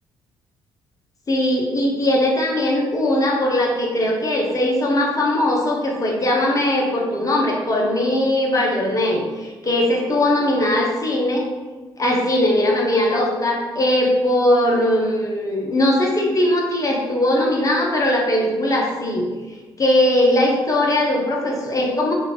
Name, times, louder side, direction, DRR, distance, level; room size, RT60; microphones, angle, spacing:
voice 1, 1.3-11.5 12.0-19.3 19.8-22.1, left 1 dB, 30° left, -1 dB, 1.1 m, -20 dB
4.6 x 2.8 x 3.4 m, 1.3 s
figure-of-eight pair, 45°, 12 cm